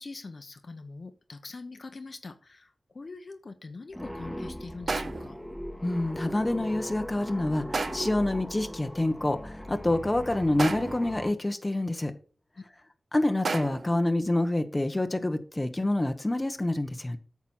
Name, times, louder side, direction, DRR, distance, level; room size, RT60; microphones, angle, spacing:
voice 1, 0.0-5.4, left 3 dB, 55° left, 1.0 m, -43 dB
sound 1, 3.9-11.3, equal, 5° left, 1.6 m, -39 dB
sound 2, 4.9-5.4 7.7-8.2 10.6-11.1 13.4-14.0, right 4 dB, 70° right, 0.6 m, -32 dB
voice 2, 5.8-12.1 13.1-17.2, left 1 dB, 25° left, 1.1 m, -27 dB
8.9 x 6.0 x 5.5 m
wide cardioid pair, 70°, 0 cm